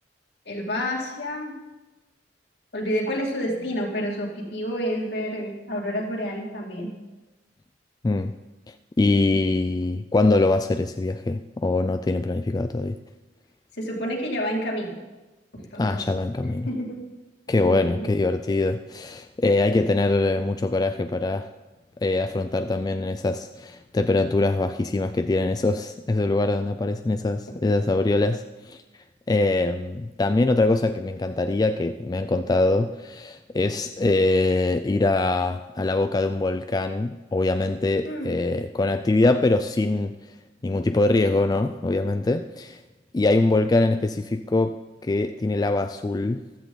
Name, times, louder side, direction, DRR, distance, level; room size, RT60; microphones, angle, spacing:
voice 1, 0.5-1.5 2.7-6.9 13.8-15.0 15.5-16.0 16.7-17.0 17.6-18.1 38.0-38.3, equal, 65° left, -1 dB, 2.6 m, -29 dB
voice 2, 8.0-8.4 8.7-13.0 15.8-16.7 17.5-21.5 22.0-28.8 29.3-40.1 40.6-42.8 43.1-46.4, left 2 dB, 20° left, 9 dB, 0.3 m, -23 dB
15.0 x 13.5 x 4.0 m, 1.1 s
head